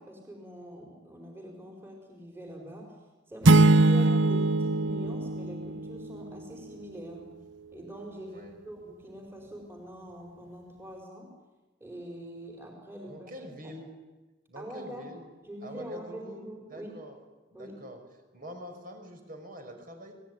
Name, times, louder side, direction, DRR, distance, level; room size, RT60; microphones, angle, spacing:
voice 1, 0.0-3.0 3.3-7.3 7.7-11.3 11.8-13.3 13.6-13.8 14.5-15.1 15.4-17.0 17.5-17.8, equal, 10° right, 0 dB, 4.6 m, -44 dB
sound 1, 3.4-6.2, right 2 dB, 75° right, 0.9 m, -22 dB
voice 2, 13.0-13.9 14.5-15.3 15.6-16.4 16.7-17.1 17.6-18.0 18.3-20.1, equal, 45° right, 4 dB, 5.9 m, -45 dB
29.0 x 19.5 x 9.6 m, 1.2 s
head